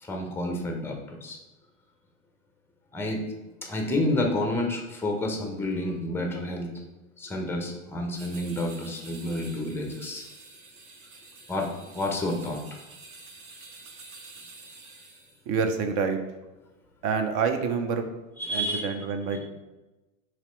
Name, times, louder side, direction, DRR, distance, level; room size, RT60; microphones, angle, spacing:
voice 1, 0.0-1.4 2.9-3.2 3.6-6.7 7.2-10.3 11.5-12.6 18.4-18.9 19.3-19.4, left 1 dB, 5° left, 2 dB, 0.5 m, -29 dB
sound 1, 8.1-15.4, right 3 dB, 90° right, 0.9 m, -48 dB
voice 2, 15.5-16.2 17.0-18.0 18.5-19.5, right 5 dB, 45° right, 6 dB, 0.6 m, -27 dB
3.0 x 2.8 x 4.3 m, 1.0 s
hypercardioid pair, 105°, 40 cm